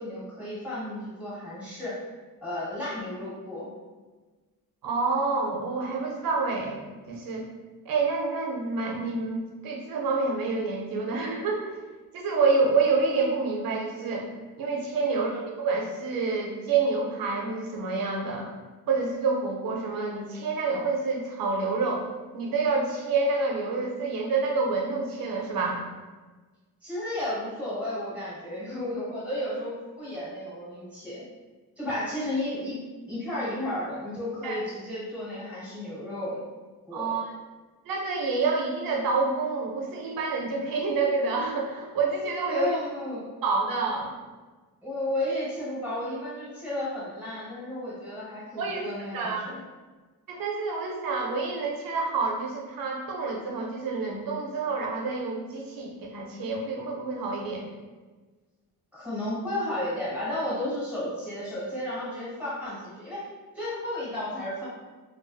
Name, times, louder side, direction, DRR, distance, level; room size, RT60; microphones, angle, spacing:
voice 1, 0.0-2.0 2.4-3.7 15.0-15.2 26.8-31.2 31.8-32.8 33.0-36.4 36.8-37.2 42.5-43.3 44.8-49.6 58.9-63.3 63.5-64.7, left 1 dB, 5° right, -9 dB, 1.0 m, -33 dB
voice 2, 4.8-6.8 7.1-7.5 7.9-11.7 12.1-14.3 14.6-18.5 18.9-22.1 22.3-25.8 34.4-34.6 36.9-37.3 37.9-42.7 43.4-44.1 48.6-48.9 49.1-49.4 50.3-57.7, right 4 dB, 70° right, 0 dB, 0.6 m, -28 dB
2.5 x 2.3 x 2.3 m, 1.3 s
cardioid pair, 140°, 36 cm